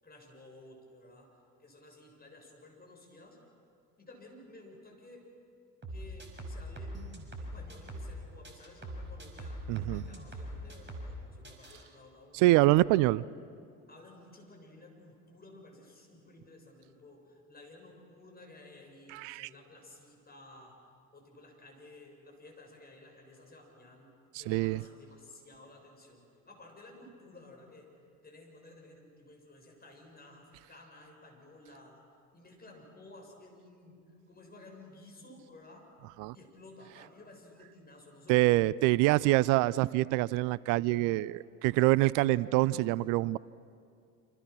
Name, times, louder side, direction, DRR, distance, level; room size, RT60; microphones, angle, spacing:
voice 1, 0.0-3.4 4.0-5.3 5.9-7.1 7.4-12.6 13.9-20.8 21.1-24.1 24.4-27.9 28.2-32.0 32.3-35.9 36.3-38.5, left 2 dB, 20° left, 1 dB, 7.2 m, -54 dB
sound 1, 5.8-8.2 8.4-11.2 11.4-11.8, right 1 dB, 25° right, 5.5 m, -42 dB
voice 2, 9.7-10.0 12.3-13.2 19.1-19.5 24.3-24.8 36.2-36.3 38.3-43.4, right 18 dB, 45° right, 21 dB, 0.5 m, -25 dB
27.5 x 26.5 x 6.2 m, 2.4 s
figure-of-eight pair, 65°, 45 cm